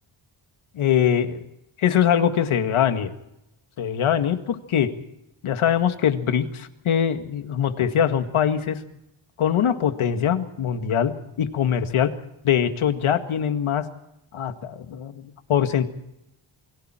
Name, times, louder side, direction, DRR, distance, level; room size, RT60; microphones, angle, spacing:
voice 1, 0.7-1.4 1.8-3.1 3.8-4.9 5.4-8.8 9.4-12.1 12.4-13.9 14.3-15.9, left 9 dB, 90° left, 7 dB, 2.1 m, -22 dB
28.5 x 23.5 x 4.5 m, 0.86 s
wide cardioid pair, 165°, 48 cm